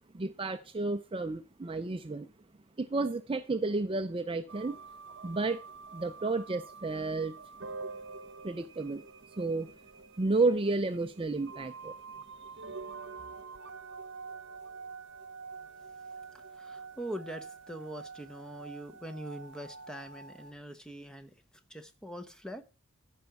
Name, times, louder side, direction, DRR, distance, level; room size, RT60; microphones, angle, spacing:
voice 1, 0.1-2.3 2.8-4.8 5.2-5.6 5.9-7.4 8.4-9.0 9.4-9.7 10.2-11.9, right 3 dB, 25° right, 0.4 m, -31 dB
sound 1, 4.5-20.5, right 4 dB, 55° right, 1.2 m, -47 dB
voice 2, 16.3-21.4 21.7-22.6, right 1 dB, 5° left, 1.0 m, -43 dB
14.0 x 5.2 x 6.9 m
head